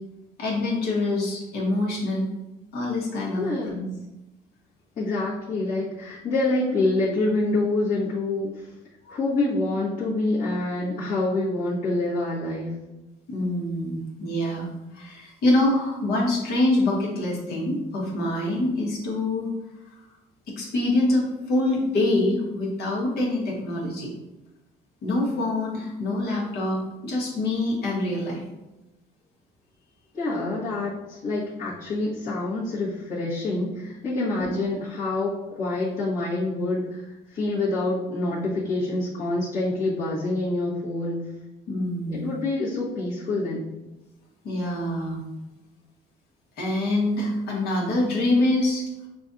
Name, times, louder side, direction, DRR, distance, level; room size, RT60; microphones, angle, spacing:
voice 1, 0.4-2.3 2.7-3.8 9.0-9.1 13.3-19.5 20.6-24.1 25.0-28.4 34.4-34.5 41.7-42.3 44.4-45.2 46.6-48.8, left 2 dB, 70° left, -4 dB, 1.5 m, -25 dB
voice 2, 3.4-3.8 5.0-8.7 9.1-12.8 30.1-41.2 42.1-43.7, left 2 dB, 50° left, -10 dB, 1.4 m, -26 dB
6.0 x 2.5 x 2.7 m, 1.0 s
cardioid pair, 110°, 17 cm